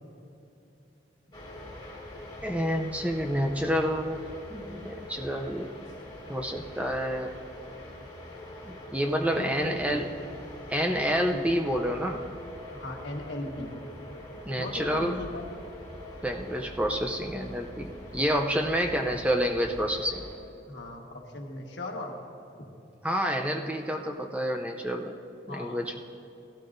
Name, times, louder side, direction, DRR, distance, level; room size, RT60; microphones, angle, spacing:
sound 1, 1.3-20.4, left 1 dB, 25° left, 1.8 m, -44 dB
voice 1, 2.4-4.2 4.5-5.8 6.3-7.3 8.6-10.1 10.7-12.2 14.5-15.2 16.2-20.2 23.0-25.1 25.5-26.0, equal, 5° right, 2 dB, 0.5 m, -28 dB
voice 2, 9.3-10.0 11.3-11.4 12.7-13.7 14.6-15.4 20.7-22.1 25.5-26.0, left 1 dB, 75° left, 1 dB, 1.4 m, -37 dB
17.5 x 12.0 x 2.6 m, 2.8 s
head